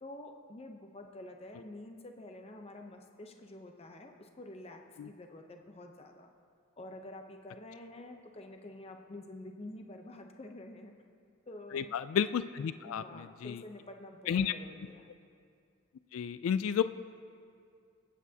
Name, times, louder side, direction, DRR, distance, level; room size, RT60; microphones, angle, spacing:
voice 1, 0.0-6.3 6.8-10.9 11.5-11.9 12.8-15.1, left 1 dB, 30° left, 4 dB, 0.6 m, -48 dB
voice 2, 11.7-13.6 14.3-14.5 16.1-16.8, left 8 dB, 75° left, 13 dB, 0.3 m, -32 dB
23.5 x 8.5 x 2.8 m, 2.3 s
head